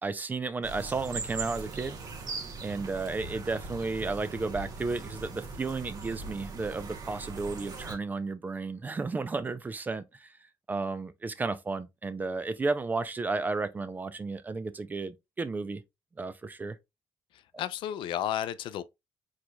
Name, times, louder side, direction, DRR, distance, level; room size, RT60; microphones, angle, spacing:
voice 1, 0.0-2.0 2.6-10.3 10.7-15.8 16.2-16.8, right 3 dB, 20° right, 0.4 m, -33 dB
sound 1, 0.6-8.0, right 3 dB, 45° right, 1.0 m, -40 dB
voice 2, 17.3-18.8, left 11 dB, 70° left, 0.4 m, -33 dB
4.7 x 4.0 x 2.2 m
cardioid pair, 140°, 9 cm